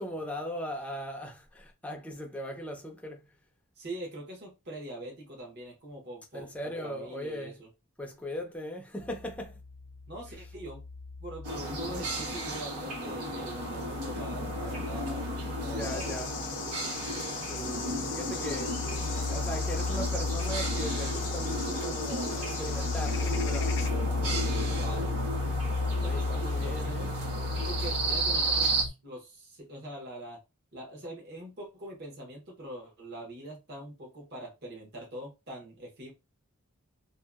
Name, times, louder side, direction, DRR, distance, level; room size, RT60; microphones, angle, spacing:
voice 1, 0.0-3.3 6.3-7.6 8.0-9.6 15.7-16.3 17.4-18.8 19.3-23.8 26.0-27.1, equal, 5° left, 0.5 m, -39 dB
voice 2, 3.8-7.7 10.1-10.8 11.2-15.3 15.6-16.1 24.7-25.1 25.9-27.1 27.5-30.4 30.7-36.1, right 1 dB, 50° right, 0.9 m, -43 dB
sound 1, 9.0-12.8 13.1-28.9, left 3 dB, 70° right, 1.4 m, -35 dB
sound 2, 11.4-28.8, right 2 dB, 90° right, 1.3 m, -34 dB
sound 3, 15.8-23.9, left 7 dB, 55° left, 0.5 m, -40 dB
2.8 x 2.5 x 2.4 m
head